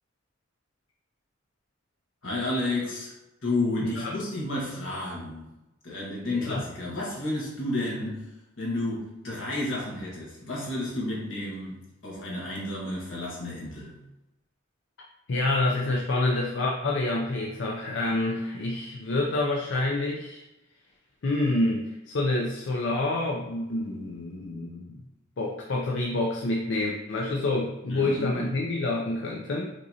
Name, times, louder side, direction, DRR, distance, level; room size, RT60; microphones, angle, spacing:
voice 1, 2.2-3.1 3.4-5.5 5.8-8.3 8.6-13.9 27.9-28.5, left 2 dB, 80° left, -4 dB, 1.4 m, -31 dB
voice 2, 3.8-4.2 6.3-6.6 15.3-20.4 21.2-25.0 25.4-29.7, left 2 dB, 65° left, -1 dB, 0.5 m, -28 dB
5.2 x 3.0 x 2.7 m, 0.96 s
head